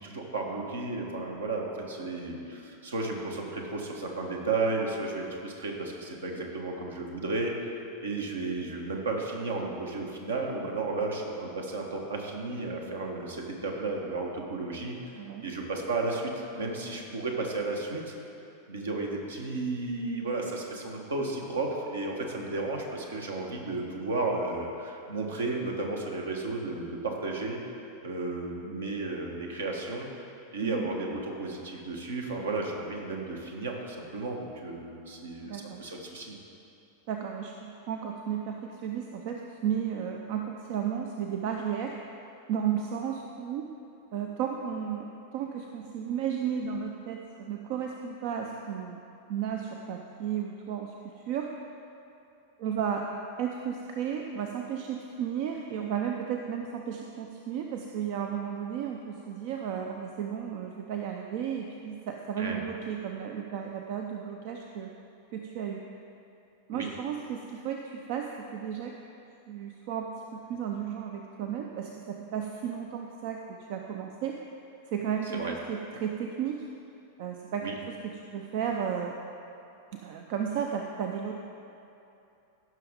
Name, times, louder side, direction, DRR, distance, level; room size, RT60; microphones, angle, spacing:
voice 1, 0.0-7.7 8.0-18.1 18.7-27.6 28.0-30.1 30.5-36.4 62.4-62.6 66.7-66.9 75.3-75.5 77.6-77.7, right 3 dB, 70° right, 0 dB, 1.3 m, -33 dB
voice 2, 15.2-15.5 30.6-30.9 35.4-35.8 37.1-42.0 42.5-43.7 44.1-45.1 45.3-49.0 49.3-51.5 52.6-53.1 53.4-64.9 65.3-65.8 66.7-69.0 69.5-74.4 74.9-76.7 77.2-79.2 80.0-81.3, right 8 dB, 50° right, 2 dB, 0.5 m, -34 dB
15.5 x 6.2 x 3.7 m, 2.8 s
figure-of-eight pair, 90°, 0 cm